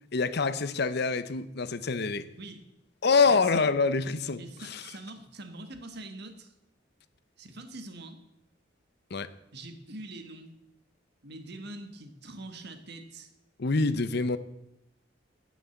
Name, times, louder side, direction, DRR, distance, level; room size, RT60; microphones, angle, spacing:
voice 1, 0.1-2.3 3.0-4.8 9.1-9.3 13.6-14.4, left 4 dB, 60° left, 0.7 m, -26 dB
voice 2, 3.2-3.7 4.4-6.5 7.4-8.2 9.5-10.6 11.2-13.3, right 2 dB, 60° right, 1.6 m, -44 dB
16.5 x 6.3 x 7.1 m
head